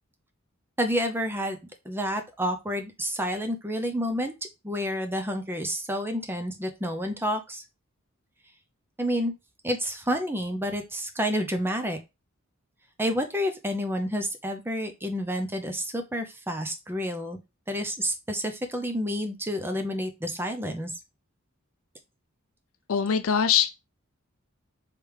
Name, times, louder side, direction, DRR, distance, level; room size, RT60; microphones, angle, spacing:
voice 1, 0.8-1.6 1.8-4.3 4.6-7.6 9.0-9.3 9.6-12.0 13.0-17.4 17.7-20.9, equal, 10° right, 0.6 m, -29 dB
voice 2, 22.9-23.7, left 8 dB, 70° left, 0.5 m, -22 dB
3.3 x 3.3 x 4.7 m
head